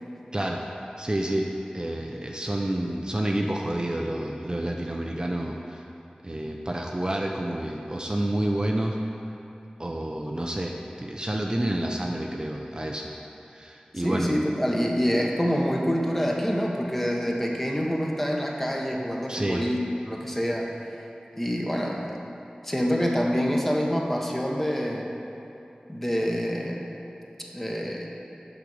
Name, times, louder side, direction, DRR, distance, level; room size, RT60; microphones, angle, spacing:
voice 1, 1.0-1.5 1.7-5.8 6.2-9.0 9.8-13.1 13.5-14.3 19.3-19.7, right 1 dB, 30° right, 0 dB, 0.5 m, -29 dB
voice 2, 14.0-19.8 20.1-20.7 21.4-22.0 22.6-25.1 25.9-26.8 27.5-28.1, equal, 10° left, -1 dB, 1.0 m, -26 dB
6.8 x 4.9 x 6.4 m, 2.8 s
wide cardioid pair, 55°, 3 cm